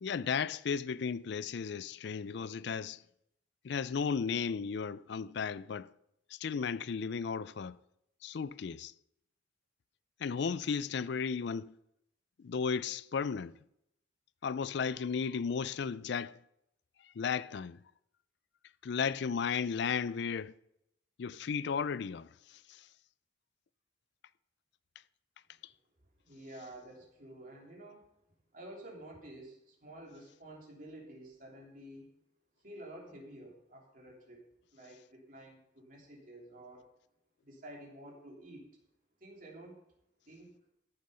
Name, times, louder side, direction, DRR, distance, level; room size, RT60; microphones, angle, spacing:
voice 1, 0.0-3.0 3.6-5.9 6.3-7.8 8.2-8.9 10.2-11.7 12.4-13.5 14.4-16.4 17.2-17.8 18.8-20.5 21.2-22.3, left 6 dB, 60° left, 0.4 m, -34 dB
voice 2, 26.2-28.1 28.5-32.1 32.6-36.9 37.4-38.7 39.2-39.8 40.3-40.5, right 1 dB, 45° right, 3.1 m, -50 dB
14.5 x 6.6 x 5.5 m
head